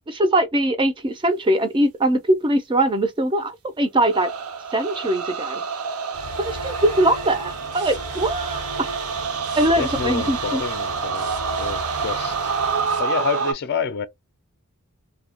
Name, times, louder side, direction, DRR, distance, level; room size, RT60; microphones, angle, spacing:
voice 1, 0.1-4.3 4.7-5.6 6.4-8.9 9.5-10.6, right 1 dB, 20° right, 0.4 m, -21 dB
sound 1, 4.0-13.5, right 5 dB, 70° right, 0.5 m, -28 dB
sound 2, 6.1-13.0, equal, 85° right, 1.0 m, -35 dB
voice 2, 9.8-11.3 11.6-12.6 13.0-14.1, left 6 dB, 50° left, 0.4 m, -28 dB
2.7 x 2.1 x 2.7 m
head